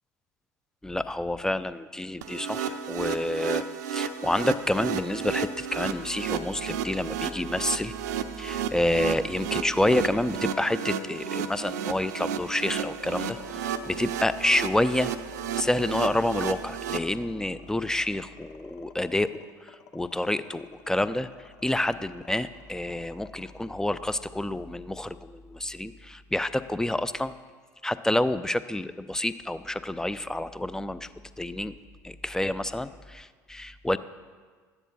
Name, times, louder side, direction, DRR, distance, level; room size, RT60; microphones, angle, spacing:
voice 1, 0.8-7.9 8.4-15.1 15.5-21.3 21.6-27.3 27.8-31.1 31.4-31.8 32.0-34.0, left 1 dB, 5° left, 14 dB, 0.5 m, -28 dB
sound 1, 2.2-17.0, right 8 dB, 70° right, 0.6 m, -33 dB
sound 2, 12.8-25.1, left 8 dB, 65° left, 0.9 m, -50 dB
13.5 x 10.0 x 4.1 m, 1.5 s
figure-of-eight pair, 65°, 9 cm